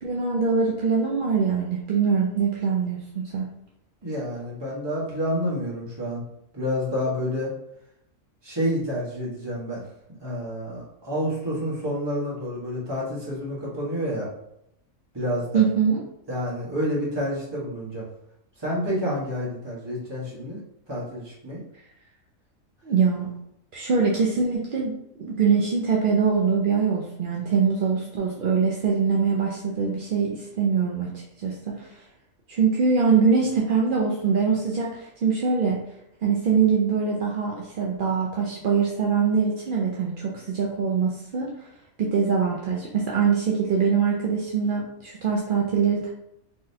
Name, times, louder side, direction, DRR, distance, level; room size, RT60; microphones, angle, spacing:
voice 1, 0.0-3.5 15.5-16.0 22.8-23.3 23.7-32.0 32.5-35.8 36.2-41.5 42.0-46.1, right 5 dB, 60° right, -2 dB, 0.5 m, -23 dB
voice 2, 4.0-6.2 6.5-7.5 8.4-9.8 10.2-14.3 15.1-15.7 16.3-18.0 18.6-20.6 20.9-21.6, equal, 20° right, -6 dB, 1.2 m, -29 dB
3.9 x 3.1 x 2.7 m, 0.79 s
omnidirectional pair, 1.4 m